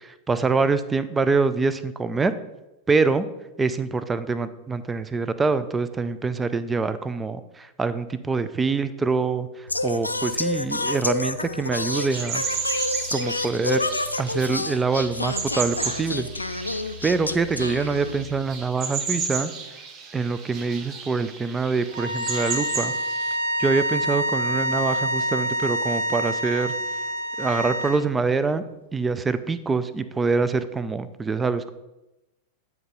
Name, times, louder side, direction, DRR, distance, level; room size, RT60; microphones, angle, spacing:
voice 1, 0.0-2.4 2.9-3.3 3.6-9.5 9.8-12.4 13.1-13.8 14.2-16.3 17.0-19.5 20.1-22.9 23.6-26.7 27.4-28.6 28.9-31.7, right 4 dB, 15° right, 13 dB, 0.4 m, -25 dB
Singing, 9.7-18.4, left 2 dB, 85° left, 0.3 m, -29 dB
sound 1, 11.9-23.4, right 5 dB, 35° right, 0.8 m, -34 dB
sound 2, 21.9-28.0, right 1 dB, 80° right, 1.2 m, -27 dB
9.3 x 4.5 x 3.8 m, 0.98 s
figure-of-eight pair, 90°, 0 cm